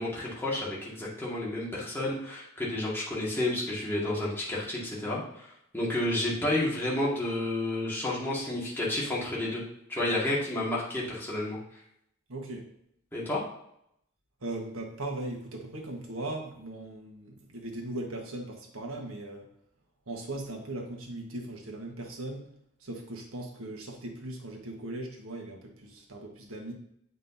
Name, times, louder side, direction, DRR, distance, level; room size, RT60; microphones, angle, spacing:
voice 1, 0.0-5.2 5.7-9.6 9.9-11.6 13.1-13.4, left 1 dB, 10° left, -6 dB, 1.8 m, -30 dB
voice 2, 12.3-12.7 14.4-19.5 20.1-22.5 22.8-26.7, right 2 dB, 80° right, 1 dB, 1.3 m, -38 dB
7.6 x 5.3 x 2.7 m, 0.75 s
head